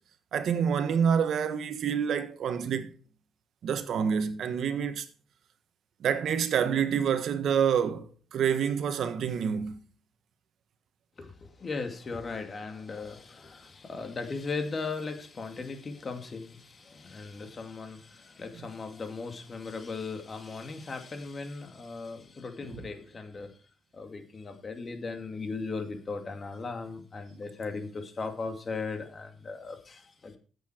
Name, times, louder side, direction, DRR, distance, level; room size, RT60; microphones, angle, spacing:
voice 1, 0.3-2.9 3.6-5.0 6.0-9.8, right 7 dB, 65° right, 1.3 m, -27 dB
voice 2, 11.2-23.5 23.9-30.4, left 4 dB, 35° left, 2.3 m, -38 dB
14.0 x 8.1 x 4.5 m
cardioid pair, 90°, 0 cm